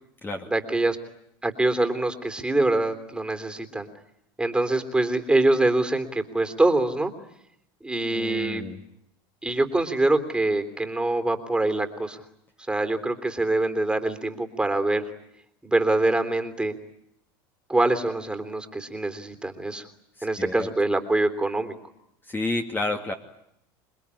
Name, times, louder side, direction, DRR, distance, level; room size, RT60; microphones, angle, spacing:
voice 1, 0.5-1.0 1.4-3.9 4.4-7.1 7.8-8.6 9.4-12.2 12.7-15.0 15.6-16.7 17.7-19.9 20.2-21.7, right 2 dB, 5° right, 8 dB, 3.4 m, -24 dB
voice 2, 8.1-8.8 20.2-20.7 22.3-23.1, left 2 dB, 15° left, 4 dB, 2.6 m, -30 dB
27.5 x 22.0 x 9.9 m, 0.77 s
supercardioid pair, 105°, 12 cm